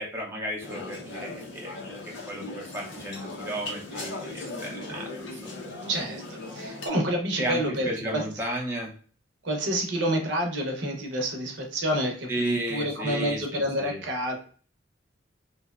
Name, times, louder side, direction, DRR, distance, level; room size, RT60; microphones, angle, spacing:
voice 1, 0.0-1.7 2.3-5.5 7.4-8.9 12.3-14.0, right 1 dB, 15° right, -2 dB, 0.5 m, -33 dB
sound 1, 0.6-6.9, left 2 dB, 85° left, 0.6 m, -38 dB
voice 2, 5.9-8.2 9.4-14.4, equal, 70° right, 1 dB, 0.7 m, -28 dB
2.7 x 2.1 x 2.3 m, 0.42 s
head